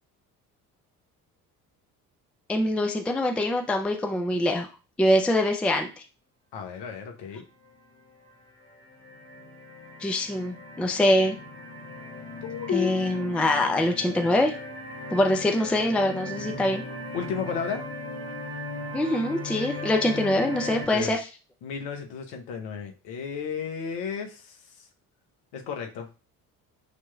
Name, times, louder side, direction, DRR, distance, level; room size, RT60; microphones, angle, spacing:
voice 1, 2.5-4.7 5.0-5.9 10.0-11.4 12.7-14.5 15.1-16.8 18.9-21.2, left 1 dB, 5° left, 4 dB, 0.4 m, -24 dB
voice 2, 6.5-7.4 12.4-13.7 17.1-17.9 20.9-21.2 21.6-24.9 25.5-26.2, left 7 dB, 60° left, 3 dB, 1.0 m, -33 dB
sound 1, 7.7-8.1 8.6-20.9, left 2 dB, 30° left, 2.1 m, -38 dB
6.2 x 3.0 x 2.2 m, 0.34 s
figure-of-eight pair, 50°, 45 cm